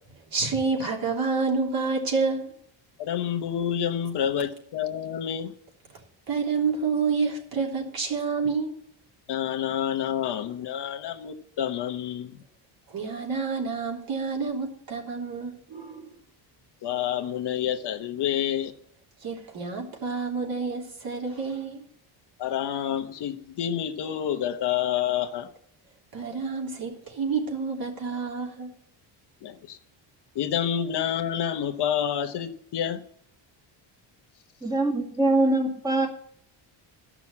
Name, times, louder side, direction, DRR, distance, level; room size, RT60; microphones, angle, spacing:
voice 1, 0.3-2.5 6.3-8.8 12.9-16.2 19.2-21.8 26.1-28.7, right 4 dB, 50° right, -1 dB, 3.4 m, -28 dB
voice 2, 3.0-5.5 9.3-12.3 16.8-18.7 22.4-25.5 29.4-29.8 30.3-33.0, left 9 dB, 55° left, 7 dB, 1.0 m, -28 dB
voice 3, 34.6-36.1, right 2 dB, 10° right, 1 dB, 2.0 m, -23 dB
13.0 x 6.1 x 8.4 m, 0.68 s
cardioid pair, 125°, 47 cm